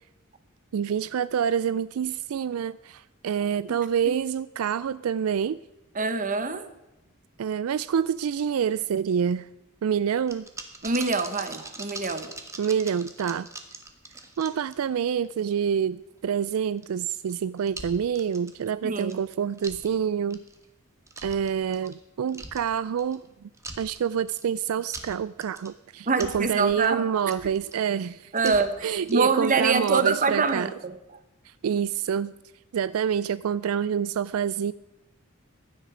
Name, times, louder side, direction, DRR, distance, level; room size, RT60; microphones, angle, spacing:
voice 1, 0.7-5.6 7.4-9.5 9.8-10.4 12.6-13.5 14.4-20.4 21.2-23.5 23.8-28.6 28.8-30.7 31.5-32.3 32.7-34.7, right 8 dB, 80° right, 17 dB, 0.4 m, -27 dB
voice 2, 5.9-6.7 10.8-12.3 18.8-19.2 26.1-27.1 28.3-28.7 29.1-30.9, right 4 dB, 40° right, 10 dB, 1.2 m, -25 dB
sound 1, 10.3-15.3 15.6-15.7 16.8-17.3 17.6-18.7 19.0-19.2 19.6-19.9 20.3-20.6 21.1-22.0 22.3-23.3 23.5-24.4 24.8-25.7 26.1-27.9 28.4-29.2 29.5-29.6, right 2 dB, 15° right, 1.4 m, -41 dB
16.0 x 11.0 x 5.0 m, 0.96 s
head